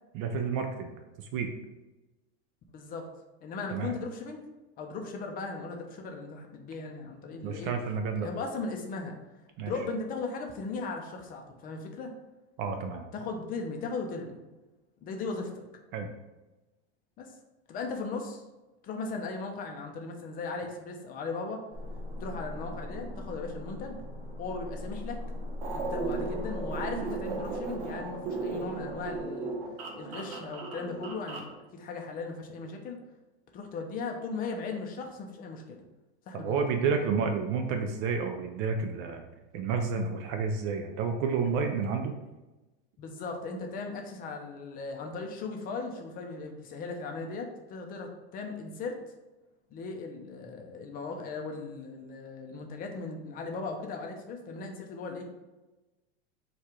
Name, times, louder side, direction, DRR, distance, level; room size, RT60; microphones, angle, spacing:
voice 1, 0.1-1.5 3.7-3.9 7.4-8.3 9.6-9.7 12.6-13.1 15.9-16.1 36.3-39.2 39.5-42.2, right 5 dB, 35° right, 5 dB, 0.4 m, -30 dB
voice 2, 2.7-3.1 3.4-4.4 4.8-7.7 8.2-9.2 9.6-12.1 13.1-14.4 15.0-15.7 17.2-17.3 17.7-18.4 18.8-21.6 22.2-24.0 24.4-25.2 25.7-29.5 30.0-33.0 33.5-35.8 36.3-36.6 43.0-49.0 49.7-55.2, left 4 dB, 25° left, 3 dB, 0.5 m, -37 dB
sound 1, 21.7-29.2, left 1 dB, 15° right, 0.8 m, -40 dB
sound 2, 25.6-31.5, right 3 dB, 65° right, 1.1 m, -36 dB
4.6 x 2.4 x 4.7 m, 1.1 s
supercardioid pair, 140°, 33 cm